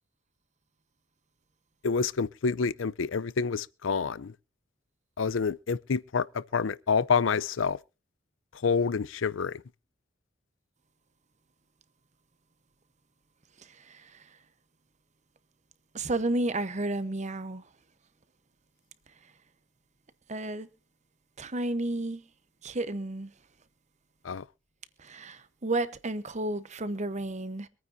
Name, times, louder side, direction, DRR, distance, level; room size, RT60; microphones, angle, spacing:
voice 1, 1.8-4.3 5.2-7.8 8.6-9.6 24.2-24.4, left 5 dB, 80° left, 0.6 m, -28 dB
voice 2, 15.9-17.6 20.3-20.7 21.4-22.2 22.6-23.3 25.0-27.7, right 2 dB, 40° right, 1.0 m, -31 dB
25.0 x 9.4 x 2.7 m
head